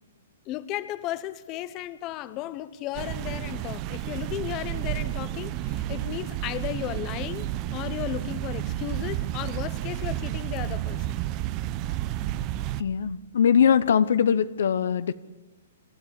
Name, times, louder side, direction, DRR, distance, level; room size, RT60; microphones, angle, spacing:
voice 1, 0.5-11.1, left 13 dB, 30° left, 15 dB, 1.0 m, -35 dB
sound 1, 2.9-12.8, right 13 dB, 35° right, 0.8 m, -31 dB
voice 2, 12.8-15.1, left 7 dB, 70° left, 15 dB, 0.8 m, -21 dB
26.5 x 12.5 x 9.9 m, 1.2 s
hypercardioid pair, 140°, 0 cm